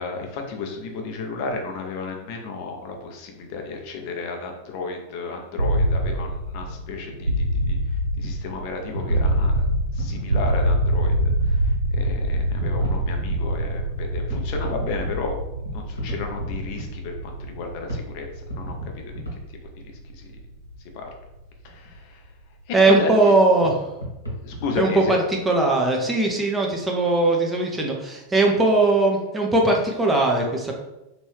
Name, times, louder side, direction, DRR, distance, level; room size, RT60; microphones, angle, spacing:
voice 1, 0.0-7.8 8.2-9.6 9.9-11.2 11.4-15.4 15.7-18.3 18.6-19.1 20.1-20.3 20.9-21.1 21.6-22.2 23.0-23.3 24.4-25.3, left 4 dB, 45° left, 3 dB, 0.6 m, -33 dB
sound 1, 5.6-21.4, right 1 dB, 80° right, 0.4 m, -25 dB
sound 2, 6.6-7.0 7.4-7.5 8.2-8.4 8.9-10.3 11.4-11.5 12.0-12.1 12.6-13.4 14.2-15.2 15.7-16.9 17.5-17.6 17.9-18.1 18.3-19.4 19.8-19.9 21.7-21.9 23.6-23.7 23.9-25.1, equal, 85° left, 1.0 m, -34 dB
voice 2, 22.7-23.8 24.8-30.7, right 2 dB, 10° right, 0 dB, 0.6 m, -20 dB
2.9 x 2.6 x 3.4 m, 0.96 s
figure-of-eight pair, 90°, 0 cm